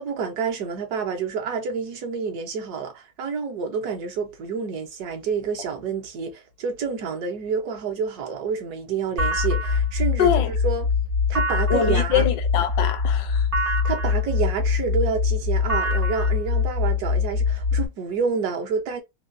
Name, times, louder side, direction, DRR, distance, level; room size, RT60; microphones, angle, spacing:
voice 1, 0.0-10.9 11.3-12.2 13.6-19.0, right 6 dB, 70° right, 1.2 m, -28 dB
sound 1, 9.2-17.9, left 4 dB, 50° right, 0.7 m, -23 dB
voice 2, 10.2-10.5 11.7-13.5, left 8 dB, 85° left, 1.3 m, -23 dB
3.4 x 2.2 x 2.4 m
omnidirectional pair, 1.8 m